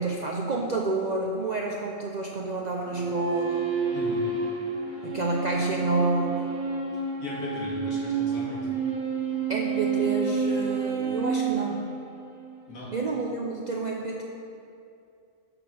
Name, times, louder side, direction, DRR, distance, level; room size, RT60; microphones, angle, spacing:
voice 1, 0.0-3.6 5.0-6.5 9.5-11.9 12.9-14.2, right 3 dB, 55° right, 0 dB, 0.4 m, -29 dB
sound 1, 2.9-12.5, right 5 dB, 75° right, 1.8 m, -29 dB
voice 2, 3.9-4.3 7.2-8.7 12.7-12.9, left 1 dB, 85° left, -6 dB, 2.4 m, -37 dB
6.7 x 6.0 x 6.1 m, 2.5 s
omnidirectional pair, 1.4 m